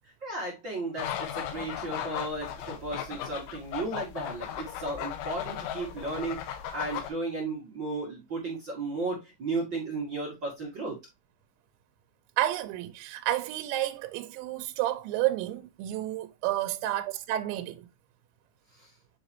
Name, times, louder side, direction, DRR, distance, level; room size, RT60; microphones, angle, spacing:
voice 1, 0.2-11.0 18.8-18.9, right 2 dB, 40° right, 1.7 m, -34 dB
sound 1, 1.0-7.1, left 10 dB, 90° left, 3.4 m, -36 dB
voice 2, 12.4-17.9, right 14 dB, 85° right, 2.9 m, -30 dB
9.3 x 4.0 x 2.8 m
omnidirectional pair, 5.4 m